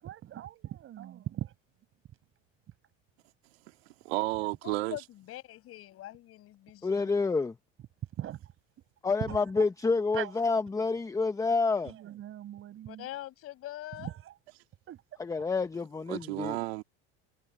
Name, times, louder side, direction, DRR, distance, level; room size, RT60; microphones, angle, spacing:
voice 1, 0.0-1.5 8.2-8.4 9.2-9.4 10.1-10.3 11.8-13.1 14.0-14.3 14.9-15.0, right 12 dB, 45° right, 6.2 m, -39 dB
voice 2, 4.0-5.0 16.1-16.8, right 20 dB, 90° right, 2.0 m, -32 dB
voice 3, 4.6-7.1 12.9-14.1, left 14 dB, 50° left, 5.9 m, -43 dB
voice 4, 6.8-7.5 9.0-11.9 15.2-16.6, left 4 dB, 10° left, 0.8 m, -28 dB
supercardioid pair, 125°, 30 cm